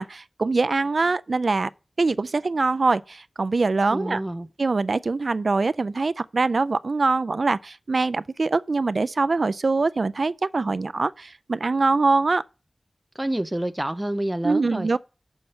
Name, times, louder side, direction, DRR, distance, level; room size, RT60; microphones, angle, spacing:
voice 1, 0.0-1.7 2.0-4.2 4.6-12.4 14.4-15.0, right 3 dB, 75° right, 0.4 m, -23 dB
voice 2, 3.9-4.5 13.1-14.9, right 1 dB, 20° right, 0.5 m, -28 dB
7.1 x 5.6 x 6.4 m
wide cardioid pair, 50°, 0 cm